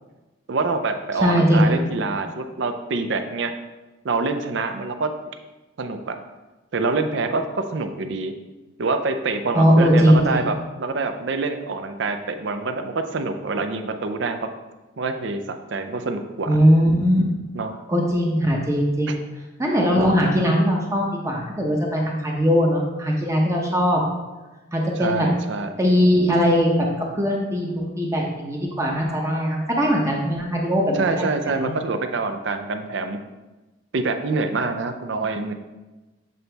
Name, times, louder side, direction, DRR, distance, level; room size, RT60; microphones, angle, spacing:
voice 1, 0.5-3.5 4.0-5.1 5.8-6.2 6.7-8.3 8.8-14.5 15.0-16.6 17.5-17.7 19.1-19.2 25.0-25.7 30.9-33.2 33.9-35.5, right 3 dB, 60° right, 7 dB, 0.5 m, -26 dB
voice 2, 1.2-1.8 9.5-10.5 16.5-17.2 17.9-19.2 19.6-24.0 24.7-25.3 25.8-26.9 27.1-31.7, equal, 15° right, -1 dB, 0.7 m, -20 dB
7.6 x 4.0 x 3.4 m, 1.1 s
head